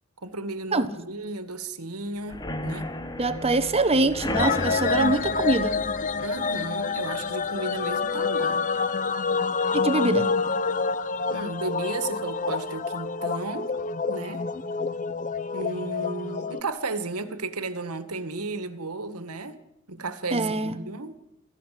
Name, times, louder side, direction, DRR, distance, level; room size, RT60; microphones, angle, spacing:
voice 1, 0.2-2.9 6.2-8.7 11.3-13.7 14.1-14.5 15.5-19.6 19.9-21.2, right 3 dB, 90° right, 1.9 m, -34 dB
sound 1, 2.3-9.9 10.3-10.7 10.9-11.0 11.4-11.5, left 1 dB, 20° left, 1.2 m, -36 dB
voice 2, 3.2-5.8 9.7-10.3 20.3-20.8, right 2 dB, 25° right, 1.3 m, -24 dB
sound 2, 4.3-16.6, left 4 dB, 35° left, 0.8 m, -27 dB
27.5 x 14.5 x 7.7 m
head